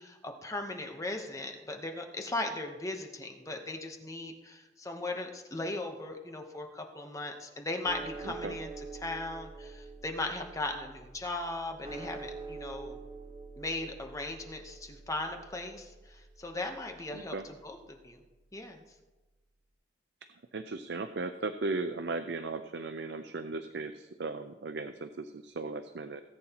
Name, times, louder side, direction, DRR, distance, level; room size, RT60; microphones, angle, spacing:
voice 1, 0.0-13.0 13.6-17.8 18.0-18.2 18.5-18.8, left 2 dB, 20° left, 4 dB, 0.9 m, -38 dB
sound 1, 7.8-18.3, right 3 dB, 30° right, 1.1 m, -46 dB
voice 2, 8.2-8.6 17.1-17.5 20.5-26.2, right 3 dB, 65° right, 9 dB, 0.5 m, -37 dB
17.5 x 8.7 x 2.9 m, 1.1 s
head